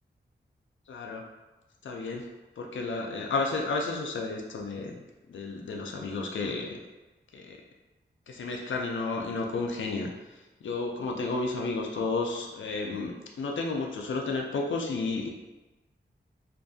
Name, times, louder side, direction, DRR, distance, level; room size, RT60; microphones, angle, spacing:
voice 1, 0.9-1.2 1.8-2.2 2.6-5.0 5.3-6.8 7.3-7.6 8.3-10.1 10.6-15.3, left 3 dB, 85° left, 1 dB, 0.4 m, -32 dB
2.6 x 2.5 x 2.3 m, 1.1 s
cardioid pair, 55°, 19 cm